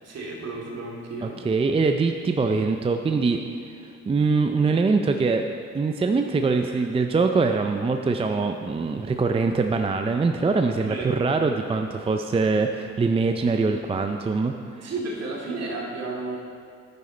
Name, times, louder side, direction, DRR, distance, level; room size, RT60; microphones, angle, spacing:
voice 1, 0.0-1.4 6.6-6.9 10.8-11.2 14.8-16.4, right 3 dB, 55° right, -2 dB, 2.3 m, -33 dB
voice 2, 1.2-3.4 4.1-5.4 5.7-14.9, right 4 dB, 20° right, 5 dB, 0.4 m, -23 dB
9.7 x 9.4 x 4.3 m, 2.3 s
cardioid pair, 90°, 30 cm